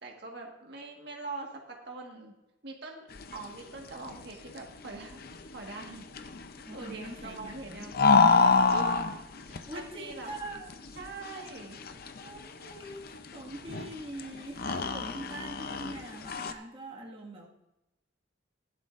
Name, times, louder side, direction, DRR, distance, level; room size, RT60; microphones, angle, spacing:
voice 1, 0.0-2.3 2.6-5.2 5.5-6.0 6.7-9.0 9.4-10.3 11.0-11.8, right 3 dB, 55° right, 0 dB, 1.6 m, -43 dB
sound 1, 3.1-16.5, left 4 dB, 50° left, 0.6 m, -29 dB
voice 2, 6.7-7.8 9.7-11.0 12.2-17.5, right 1 dB, 30° right, -3 dB, 1.8 m, -43 dB
16.0 x 11.5 x 2.5 m, 0.95 s
head